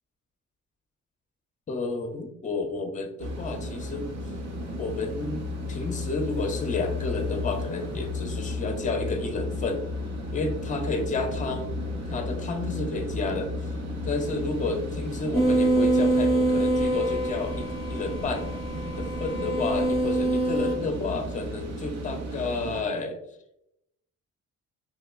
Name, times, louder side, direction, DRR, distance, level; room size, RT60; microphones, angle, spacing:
voice 1, 1.7-4.1 4.8-9.8 10.3-11.8 12.1-13.5 14.1-18.5 19.0-23.2, left 3 dB, 25° left, 5 dB, 0.6 m, -31 dB
sound 1, 3.2-22.8, left 1 dB, 60° right, 0.6 m, -34 dB
sound 2, 15.3-20.8, right 1 dB, 20° right, 0.8 m, -25 dB
3.1 x 2.8 x 2.3 m, 0.79 s
cardioid pair, 90°, 30 cm